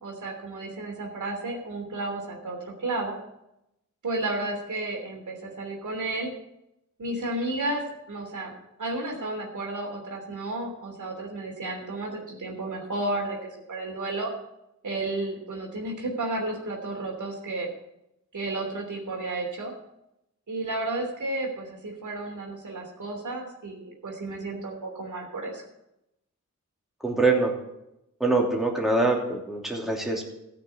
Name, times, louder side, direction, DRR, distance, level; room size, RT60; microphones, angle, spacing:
voice 1, 0.0-3.1 4.0-6.3 7.0-8.5 8.8-14.3 14.8-17.7 18.3-19.7 20.5-25.6, right 2 dB, 75° right, 0 dB, 3.1 m, -32 dB
voice 2, 27.0-27.5 28.2-30.3, right 2 dB, ahead, -1 dB, 2.8 m, -24 dB
14.0 x 6.1 x 8.5 m, 0.87 s
wide cardioid pair, 70°, 31 cm